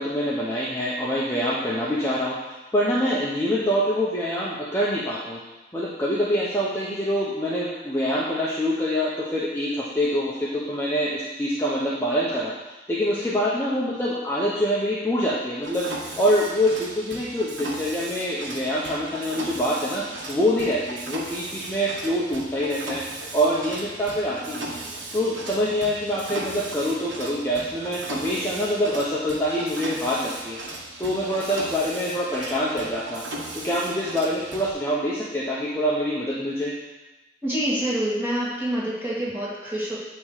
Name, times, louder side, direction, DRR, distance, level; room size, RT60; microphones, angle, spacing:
voice 1, 0.0-5.4 5.7-15.9 16.2-23.0 23.3-24.8 25.1-30.6 31.0-33.2 33.5-36.7, equal, 15° left, -7 dB, 0.9 m, -25 dB
Mechanisms, 15.6-34.7, right 2 dB, 90° right, 1.3 m, -37 dB
voice 2, 37.4-40.0, right 1 dB, 10° right, -8 dB, 2.3 m, -26 dB
9.3 x 3.2 x 6.6 m, 1.1 s
head